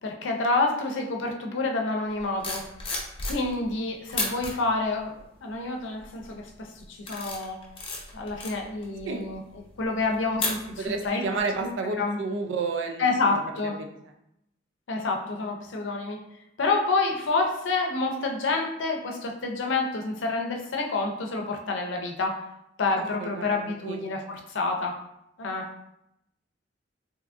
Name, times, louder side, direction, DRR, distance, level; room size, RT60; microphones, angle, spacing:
voice 1, 0.0-2.7 3.2-7.6 8.1-9.4 9.8-11.2 12.0-12.2 13.0-13.8 14.9-16.2 16.6-22.4 22.8-25.0 25.4-25.7, left 3 dB, 90° left, 2 dB, 0.5 m, -28 dB
sound 1, 2.2-3.7 4.1-4.5 5.2-5.5 6.0-6.3 6.8-11.1 11.4-11.6, left 3 dB, 30° left, 0.6 m, -34 dB
voice 2, 10.8-13.7 23.2-24.0, right 4 dB, 90° right, 4 dB, 0.4 m, -31 dB
2.7 x 2.5 x 3.5 m, 0.82 s
head